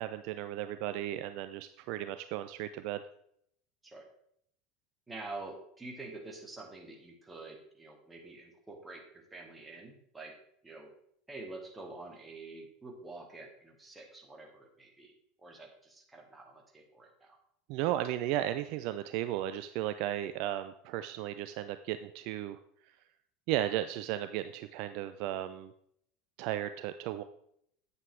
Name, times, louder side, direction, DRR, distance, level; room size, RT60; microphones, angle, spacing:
voice 1, 0.0-3.0 17.7-22.6 23.5-25.7 26.4-27.2, right 13 dB, 60° right, 11 dB, 0.4 m, -35 dB
voice 2, 5.1-10.3 10.6-10.9 11.3-15.1 15.4-17.4, right 2 dB, 15° right, 1 dB, 2.3 m, -47 dB
9.5 x 8.1 x 3.3 m, 0.70 s
hypercardioid pair, 80°, 0 cm